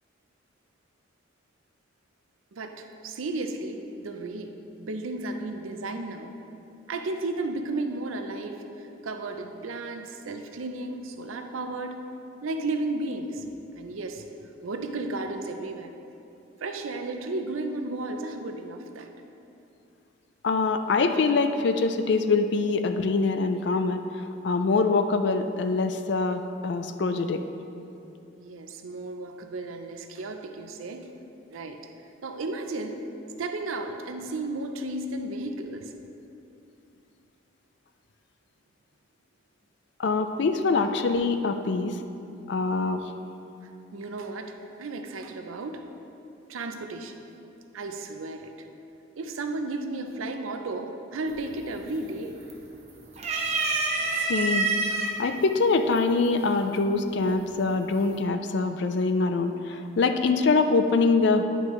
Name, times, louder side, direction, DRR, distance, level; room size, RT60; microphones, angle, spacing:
voice 1, 2.5-6.3 6.9-12.0 12.4-13.5 13.8-14.2 14.6-15.9 16.6-19.1 28.4-31.1 31.5-31.8 32.2-33.1 33.4-35.9 43.9-45.8 46.5-47.2 47.7-48.7 49.2-52.4, right 2 dB, 85° right, 6 dB, 0.5 m, -34 dB
voice 2, 20.4-27.4 40.0-42.0 42.5-43.0 54.1-54.7 55.2-61.4, left 3 dB, 60° left, 8 dB, 0.4 m, -24 dB
sound 1, 51.3-51.7 52.1-52.8 53.2-55.1 56.0-56.1 57.3-57.7, right 3 dB, 35° right, 0.7 m, -27 dB
9.4 x 5.3 x 3.1 m, 2.8 s
head